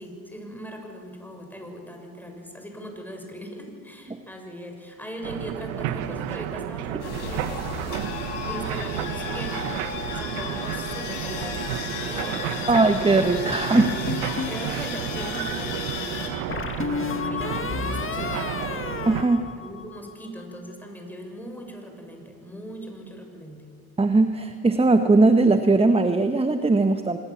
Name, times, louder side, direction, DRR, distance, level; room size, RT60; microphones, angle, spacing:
voice 1, 0.0-8.1 8.4-12.8 13.4-13.9 14.4-18.9 19.6-23.7, equal, 5° left, 2 dB, 6.6 m, -39 dB
sound 1, 5.2-19.2, right 11 dB, 80° right, 1.4 m, -32 dB
sound 2, 7.0-16.3, left 5 dB, 75° left, 4.3 m, -34 dB
voice 2, 12.7-13.9 19.1-19.5 24.0-27.2, right 3 dB, 15° right, 8 dB, 1.2 m, -19 dB
sound 3, 13.8-14.6 16.5-20.1, left 5 dB, 30° left, 2.0 m, -31 dB
25.0 x 20.0 x 7.5 m, 2.3 s
hypercardioid pair, 65°, 42 cm